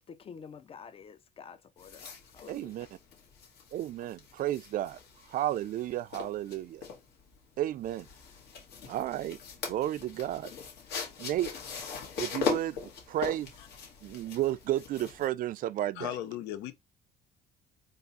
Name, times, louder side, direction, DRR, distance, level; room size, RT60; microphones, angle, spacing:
voice 1, 0.0-2.1 2.3-2.7, left 6 dB, 35° left, 0.6 m, -48 dB
sound 1, 1.8-15.3, left 6 dB, 70° left, 1.8 m, -40 dB
voice 2, 2.5-2.9 3.7-5.0 5.3-6.8 7.6-8.1 8.9-9.4 9.6-10.5 11.2-11.5 12.2-12.8 13.1-13.5 14.0-16.1, right 13 dB, 55° right, 0.4 m, -32 dB
voice 3, 15.9-16.8, left 12 dB, 90° left, 0.7 m, -37 dB
3.6 x 2.5 x 4.0 m
cardioid pair, 110°, 17 cm